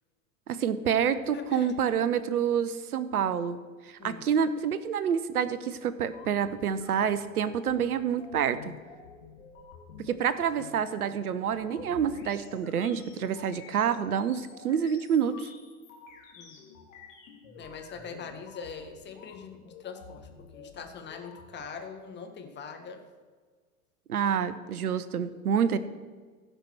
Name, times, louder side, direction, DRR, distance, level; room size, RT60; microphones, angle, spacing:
voice 1, 0.5-3.6 3.9-8.6 10.0-15.5 24.1-25.8, right 8 dB, 75° right, 14 dB, 0.8 m, -28 dB
voice 2, 1.3-1.7 4.0-4.2 10.1-10.2 16.3-16.7 17.6-23.0, left 5 dB, 25° left, 5 dB, 1.5 m, -42 dB
sound 1, 6.0-21.9, left 5 dB, 60° left, 2.0 m, -50 dB
15.5 x 5.5 x 6.2 m, 1.5 s
figure-of-eight pair, 95°, 44 cm